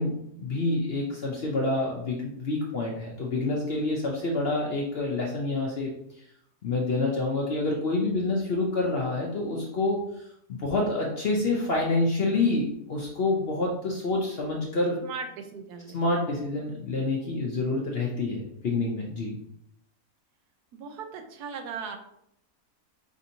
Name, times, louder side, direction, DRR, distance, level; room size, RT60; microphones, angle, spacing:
voice 1, 0.0-5.9 6.6-15.0 15.9-19.4, left 2 dB, 60° left, -2 dB, 0.6 m, -27 dB
voice 2, 15.0-16.0 20.7-22.0, right 5 dB, 90° right, 6 dB, 1.2 m, -38 dB
5.0 x 2.7 x 2.6 m, 0.76 s
omnidirectional pair, 1.6 m